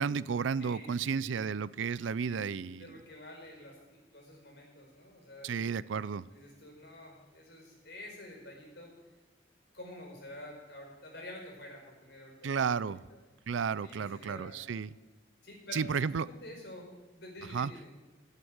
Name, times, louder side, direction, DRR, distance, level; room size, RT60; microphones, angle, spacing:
voice 1, 0.0-2.9 5.4-6.2 12.4-13.0 13.5-14.9 15.7-16.3 17.5-17.7, right 6 dB, 90° right, 19 dB, 0.4 m, -32 dB
voice 2, 0.6-1.5 2.3-2.5 2.8-5.6 6.3-8.9 9.7-12.9 13.8-14.6 15.4-17.9, left 1 dB, 65° left, 0 dB, 4.8 m, -49 dB
13.0 x 8.3 x 8.0 m, 1.2 s
head